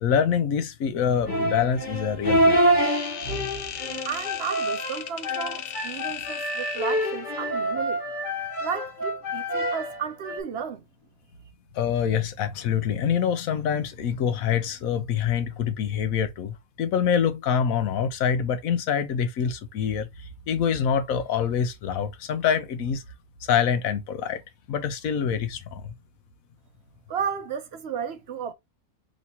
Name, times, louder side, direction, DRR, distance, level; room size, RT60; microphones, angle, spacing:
voice 1, 0.0-2.8 11.7-20.1 20.5-23.0 23.5-24.4 24.7-25.9, left 7 dB, 90° left, 1.2 m, -25 dB
sound 1, 1.2-10.4, right 1 dB, 35° left, 1.4 m, -26 dB
sound 2, 2.8-7.2, left 9 dB, 60° left, 0.6 m, -36 dB
voice 2, 4.0-8.0 8.6-10.8 27.1-28.5, right 7 dB, 60° right, 0.8 m, -33 dB
3.2 x 3.1 x 4.1 m
omnidirectional pair, 1.4 m